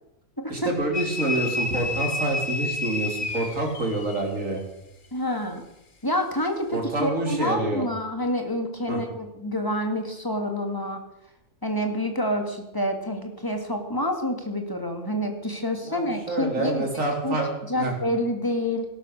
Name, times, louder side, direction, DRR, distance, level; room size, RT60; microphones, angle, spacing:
voice 1, 0.5-4.6 6.7-7.8 8.9-9.0 15.8-17.5 17.8-17.9, right 2 dB, 75° right, 1 dB, 3.9 m, -27 dB
sound 1, 0.9-4.3, left 3 dB, 40° left, 1.4 m, -30 dB
voice 2, 5.1-5.6 6.0-11.0 11.6-16.8 17.2-17.4 17.7-18.9, left 1 dB, 15° left, 4 dB, 2.4 m, -27 dB
17.0 x 12.0 x 6.6 m, 0.85 s
omnidirectional pair, 1.4 m